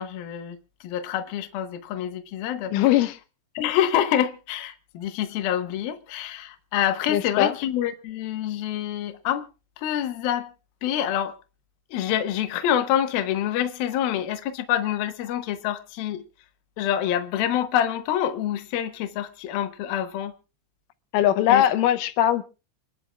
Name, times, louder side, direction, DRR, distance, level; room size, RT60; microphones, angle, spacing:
voice 1, 0.0-2.9 3.5-9.5 9.8-10.5 10.8-11.4 11.9-16.2 16.8-20.3 21.5-21.6, left 10 dB, 65° left, 2.7 m, -26 dB
voice 2, 2.7-3.2 7.1-7.5 21.1-22.4, left 12 dB, 85° left, 3.3 m, -20 dB
28.5 x 9.8 x 2.4 m
omnidirectional pair, 5.4 m